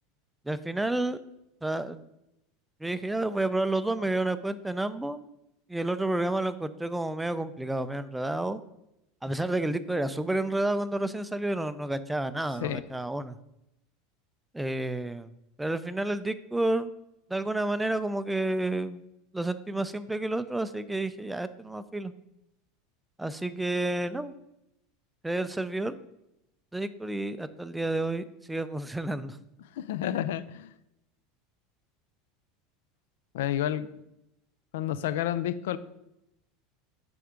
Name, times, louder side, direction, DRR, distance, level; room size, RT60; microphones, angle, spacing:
voice 1, 0.5-1.2 1.6-2.1 2.8-5.3 5.7-8.6 9.2-13.4 14.5-15.3 15.6-16.9 17.3-19.0 19.3-22.1 23.2-24.3 25.2-25.9 26.7-29.4, right 2 dB, 5° right, 13 dB, 0.3 m, -30 dB
voice 2, 29.8-30.7 33.3-33.9 34.7-35.8, left 11 dB, 85° left, 15 dB, 0.4 m, -30 dB
6.5 x 3.5 x 5.0 m, 0.86 s
supercardioid pair, 135°, 0 cm